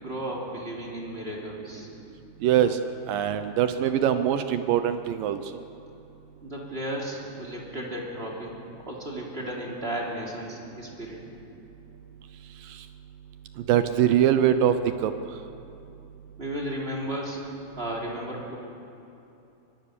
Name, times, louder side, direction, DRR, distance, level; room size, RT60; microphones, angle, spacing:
voice 1, 0.0-1.9 6.4-8.5 8.8-11.2 16.4-17.4 17.8-18.6, right 1 dB, 15° right, -3 dB, 3.1 m, -34 dB
voice 2, 2.4-2.8 3.1-5.4 12.6-12.9 13.6-15.1, right 10 dB, 75° right, 10 dB, 2.2 m, -23 dB
23.5 x 21.0 x 6.8 m, 2.8 s
omnidirectional pair, 4.5 m